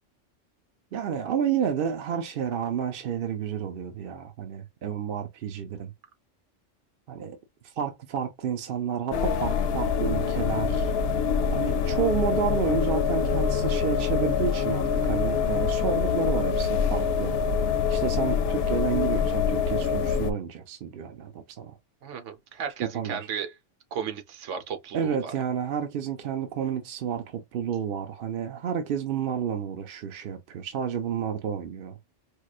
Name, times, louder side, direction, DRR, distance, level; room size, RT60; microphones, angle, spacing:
voice 1, 0.9-5.9 7.1-7.4 7.6-10.9 11.5-17.4 17.9-21.8 22.8-23.3 24.9-31.9, right 8 dB, 55° right, 0.7 m, -30 dB
sound 1, 9.1-20.3, left 6 dB, 65° left, 0.7 m, -25 dB
voice 2, 22.0-23.5 23.9-25.3, right 7 dB, 80° right, 1.1 m, -34 dB
4.7 x 2.3 x 2.3 m
omnidirectional pair, 1.2 m